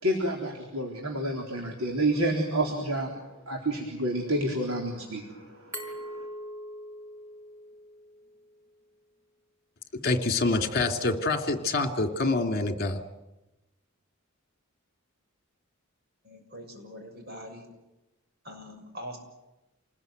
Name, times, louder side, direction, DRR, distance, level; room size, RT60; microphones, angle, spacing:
voice 1, 0.0-3.1 3.4-6.3, right 1 dB, 80° right, 4.0 m, -29 dB
Glass, 5.7-8.5, equal, 15° right, 4.8 m, -41 dB
voice 2, 10.0-13.0, left 3 dB, 45° left, 2.6 m, -26 dB
voice 3, 16.2-17.6 18.4-19.2, equal, 45° right, 6.7 m, -43 dB
28.0 x 20.5 x 9.4 m
head